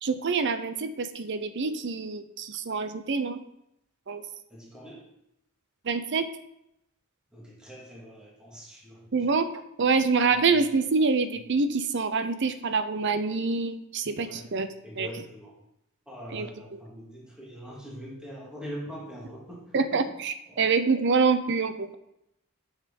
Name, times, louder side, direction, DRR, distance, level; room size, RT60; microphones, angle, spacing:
voice 1, 0.0-3.4 4.1-4.2 5.9-6.3 9.1-9.5 9.8-14.7 15.0-15.1 16.3-16.5 19.7-22.0, right 4 dB, 55° right, 10 dB, 0.6 m, -26 dB
voice 2, 4.5-5.1 7.3-9.1 10.2-10.8 11.3-11.4 14.1-14.6 14.8-15.6 16.1-20.1 20.5-20.9, equal, 5° right, -5 dB, 2.0 m, -43 dB
6.5 x 6.3 x 5.3 m, 0.81 s
head